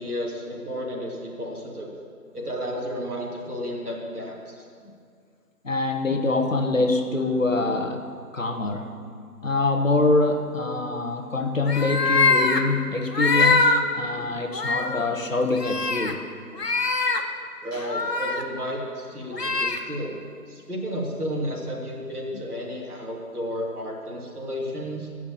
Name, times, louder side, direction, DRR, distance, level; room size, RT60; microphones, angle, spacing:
voice 1, 0.0-1.9 2.3-4.6 17.6-20.2 20.5-25.1, equal, 70° right, -1 dB, 3.0 m, -32 dB
voice 2, 5.6-9.0 9.4-16.2 17.7-17.9, left 2 dB, 55° left, 5 dB, 1.2 m, -25 dB
sound 1, 11.7-12.6 13.1-13.8 14.2-14.3 14.5-15.0 15.6-16.1 16.6-17.2 17.8-18.4 19.3-19.8, left 3 dB, 80° left, 1.4 m, -22 dB
15.5 x 6.1 x 8.8 m, 2.2 s
figure-of-eight pair, 175°, 47 cm